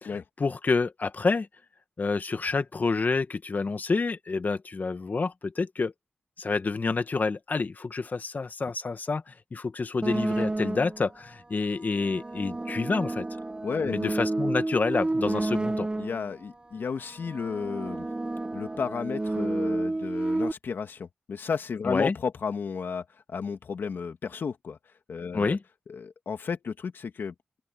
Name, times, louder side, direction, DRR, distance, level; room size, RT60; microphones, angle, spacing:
voice 1, 0.0-1.5 2.0-5.9 6.4-13.3 13.9-15.9 21.8-22.1 25.3-25.6, left 4 dB, 50° left, 1.8 m, -28 dB
sound 1, 10.0-11.1 11.9-16.4 17.1-20.5, right 2 dB, 25° right, 1.0 m, -30 dB
voice 2, 13.6-14.0 16.0-18.1 18.5-24.8 25.1-25.6 25.9-27.3, left 6 dB, 75° left, 2.3 m, -33 dB
open air
cardioid pair, 50°, 4 cm